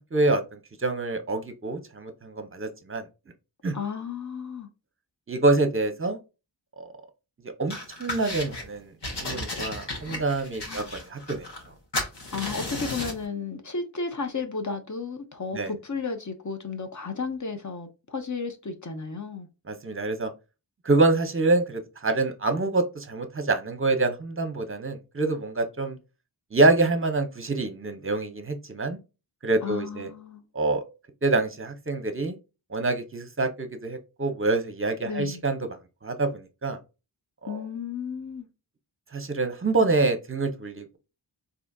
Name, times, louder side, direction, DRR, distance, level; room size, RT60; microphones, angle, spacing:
voice 1, 0.1-3.0 3.6-3.7 5.3-6.2 6.8-6.9 7.6-7.7 8.0-8.9 9.2-11.5 15.5-15.7 19.7-20.3 20.8-26.0 26.5-29.0 29.4-30.1 30.5-30.8 31.2-32.4 32.7-35.6 36.0-36.8 37.4-37.6 39.1-41.0, right 2 dB, 30° right, 0.8 m, -26 dB
voice 2, 3.7-4.7 10.7-10.9 12.3-19.5 29.6-30.4 35.0-35.4 37.5-38.5, left 5 dB, 40° left, 0.8 m, -33 dB
sound 1, 7.7-8.7 9.0-11.7 11.9-13.3, left 2 dB, 60° left, 1.3 m, -34 dB
3.9 x 2.8 x 2.3 m
wide cardioid pair, 55°, 46 cm